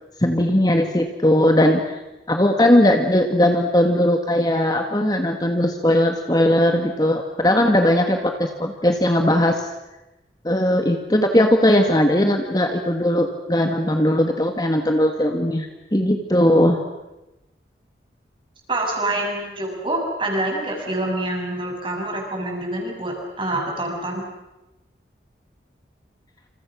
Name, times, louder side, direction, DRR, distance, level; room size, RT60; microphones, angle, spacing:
voice 1, 0.2-1.8 2.3-9.6 10.4-16.8, left 1 dB, 20° left, 4 dB, 1.9 m, -18 dB
voice 2, 18.7-24.2, right 1 dB, 30° right, 0 dB, 7.3 m, -26 dB
28.5 x 28.0 x 6.4 m, 0.99 s
head